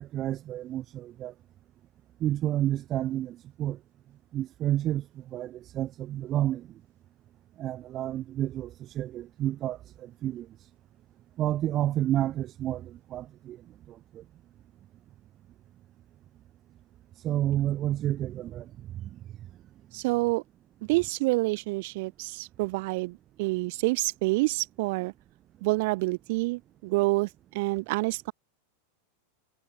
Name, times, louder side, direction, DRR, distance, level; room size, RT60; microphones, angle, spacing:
voice 1, 0.0-1.3 2.2-3.8 4.3-5.0 5.3-6.6 7.6-9.8 10.2-10.5 11.4-13.6 14.1-14.2 17.2-18.6, right 13 dB, 30° right, 0.6 m, -30 dB
voice 2, 19.9-20.4 20.9-25.1 25.6-28.3, right 24 dB, 50° right, 3.5 m, -28 dB
figure-of-eight pair, 90°, 0 cm